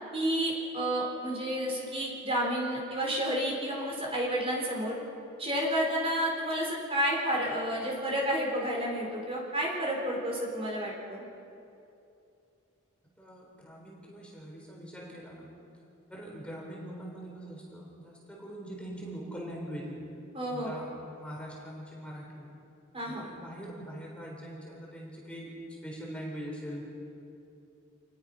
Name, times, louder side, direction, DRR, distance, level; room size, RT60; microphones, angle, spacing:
voice 1, 0.1-5.0 5.4-11.2 20.3-20.7 22.9-23.3, equal, 30° right, -2 dB, 4.3 m, -30 dB
voice 2, 13.2-15.5 16.1-20.0 20.5-20.9 21.2-22.5 23.0-25.5 25.8-26.8, equal, 5° left, -3 dB, 4.0 m, -42 dB
27.5 x 20.5 x 5.6 m, 2.7 s
head